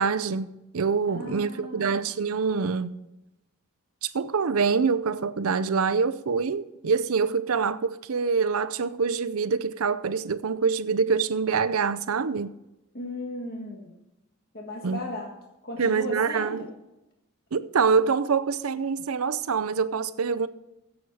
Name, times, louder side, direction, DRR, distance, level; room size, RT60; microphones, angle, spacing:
voice 1, 0.0-2.9 4.0-12.5 14.8-15.0 15.8-16.6 17.5-20.5, right 5 dB, 80° right, 0.6 m, -25 dB
voice 2, 1.1-2.0 12.9-13.9 14.5-15.3 15.6-16.7, left 1 dB, 45° left, 1.6 m, -36 dB
15.5 x 7.3 x 4.8 m
head